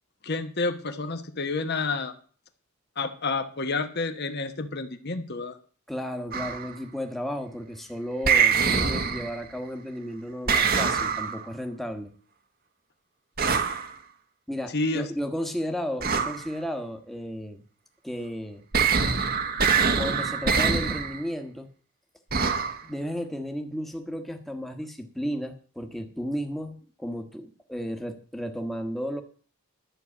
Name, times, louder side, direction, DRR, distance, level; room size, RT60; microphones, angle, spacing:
voice 1, 0.2-2.1 3.0-5.6 14.7-15.1, left 3 dB, 45° left, 7 dB, 1.1 m, -29 dB
voice 2, 5.9-12.1 14.5-17.6 18.0-18.6 19.7-21.7 22.8-29.2, equal, ahead, 5 dB, 1.3 m, -33 dB
sound 1, 6.3-6.7 8.2-9.5 10.5-11.5 13.4-13.9 16.0-16.5 18.7-21.2 22.3-22.8, right 5 dB, 45° right, 1.2 m, -24 dB
11.5 x 6.4 x 8.4 m, 0.43 s
head